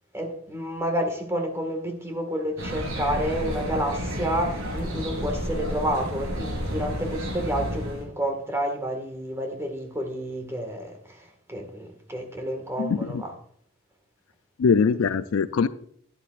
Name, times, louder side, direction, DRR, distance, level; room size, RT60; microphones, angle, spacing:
voice 1, 0.1-13.3, equal, 15° right, 1.8 m, -30 dB
sound 1, 2.6-8.0, equal, 85° right, 3.9 m, -31 dB
voice 2, 12.8-13.2 14.6-15.7, left 5 dB, 70° left, 0.4 m, -22 dB
12.0 x 10.5 x 2.5 m
head